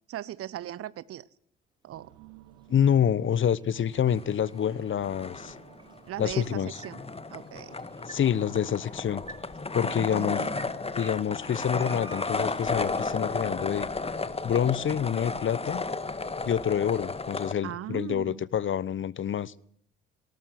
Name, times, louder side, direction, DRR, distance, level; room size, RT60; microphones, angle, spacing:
voice 1, 0.1-1.3 1.8-2.1 6.1-7.0 7.3-7.7 9.8-10.6 17.6-18.4, right 12 dB, 50° right, 0.9 m, -38 dB
sound 1, 1.7-17.9, right 2 dB, 15° right, 5.2 m, -54 dB
sound 2, 1.9-16.6, right 13 dB, 75° right, 1.9 m, -56 dB
voice 2, 2.7-5.5 6.2-6.8 8.1-9.2 9.7-10.5 11.0-13.9 14.4-15.8 16.4-19.5, left 9 dB, 40° left, 1.0 m, -27 dB
sound 3, 4.0-4.8 5.0-17.5, left 3 dB, 20° left, 1.7 m, -33 dB
19.0 x 18.5 x 7.9 m
hypercardioid pair, 55°, 30 cm